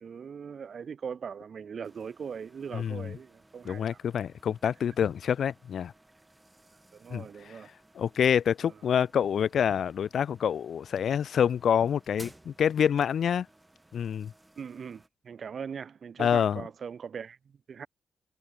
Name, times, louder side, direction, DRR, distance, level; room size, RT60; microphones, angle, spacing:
voice 1, 0.0-4.0 6.9-7.7 8.6-8.7 14.6-17.4 17.7-17.9, right 6 dB, 60° right, 0.5 m, -40 dB
sound 1, 1.8-15.1, right 1 dB, 10° right, 6.9 m, -58 dB
voice 2, 2.7-3.2 3.6-5.9 7.1-7.6 7.9-13.5 13.9-14.3 16.2-16.6, left 8 dB, 75° left, 0.8 m, -27 dB
cardioid pair, 100°, 0 cm